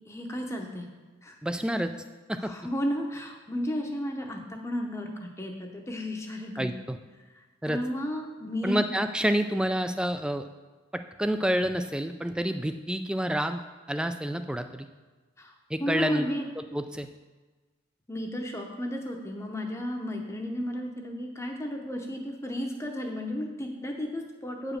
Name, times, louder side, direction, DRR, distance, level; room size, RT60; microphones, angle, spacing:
voice 1, 0.1-0.9 1.2-1.4 2.4-6.7 7.3-8.8 15.4-15.5 15.8-16.5 18.1-24.8, left 1 dB, 15° left, 2 dB, 0.7 m, -33 dB
voice 2, 1.4-1.9 2.3-2.5 6.6-7.0 7.6-7.8 8.6-10.5 10.9-13.6 13.9-14.9 15.7-16.3 16.6-17.1, equal, 5° right, 8 dB, 0.3 m, -28 dB
8.6 x 5.0 x 6.5 m, 1.3 s
head